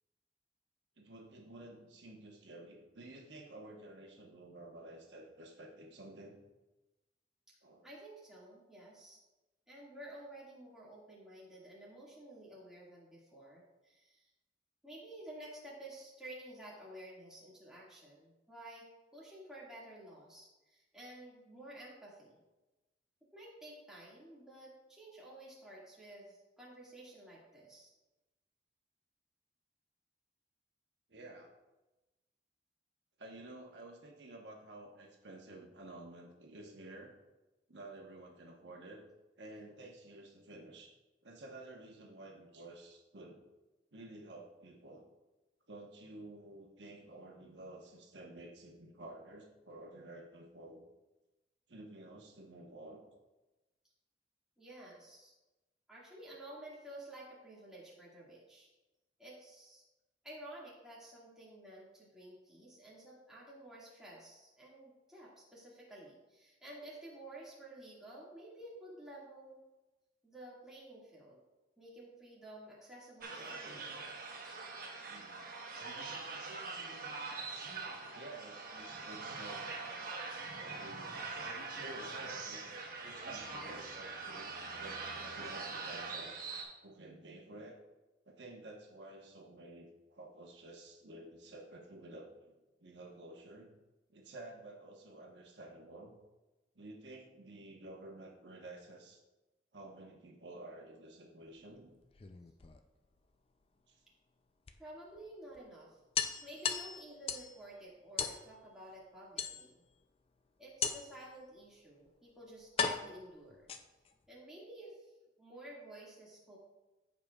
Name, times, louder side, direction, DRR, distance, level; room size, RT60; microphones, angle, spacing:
voice 1, 1.0-6.4 7.6-7.9 31.1-31.5 33.2-37.1 37.7-39.0 39.4-40.9 41.2-43.4 43.9-45.0 45.7-50.8 51.7-53.0 75.0-75.6 78.1-79.8 80.6-81.2 81.7-84.5 84.8-86.4 86.8-87.8 88.2-92.5 92.8-93.7 94.1-96.1 96.7-99.2 99.7-101.9 103.9-104.0, right 2 dB, 75° right, 0 dB, 1.1 m, -51 dB
voice 2, 7.8-9.2 9.7-14.3 14.8-18.9 19.1-22.4 23.3-27.9 38.6-38.7 54.6-55.3 55.9-58.7 59.2-59.8 60.2-69.6 70.2-71.4 71.8-74.0 104.8-106.0 106.4-109.8 110.6-113.7 114.3-115.1 115.4-116.6, right 1 dB, 5° right, -7 dB, 1.9 m, -52 dB
sound 1, 73.2-86.6, right 4 dB, 50° right, 1.2 m, -43 dB
sound 2, 102.0-103.2 104.7-104.8 105.2-105.3 105.6-105.7 106.2-107.6 108.2-108.4 109.4-109.9 110.8-111.2 112.1-112.2 112.8-114.1, left 6 dB, 30° left, 0.4 m, -37 dB
14.0 x 5.0 x 2.4 m, 1.1 s
head